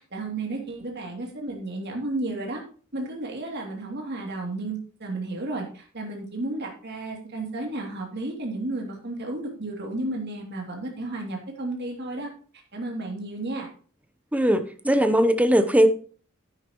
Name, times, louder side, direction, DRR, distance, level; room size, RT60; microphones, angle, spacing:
voice 1, 0.1-2.6 2.9-12.3 12.7-13.7, right 2 dB, 55° right, 1 dB, 2.8 m, -32 dB
voice 2, 14.3-15.9, equal, 5° right, 10 dB, 0.8 m, -19 dB
11.0 x 9.7 x 3.0 m, 0.42 s
head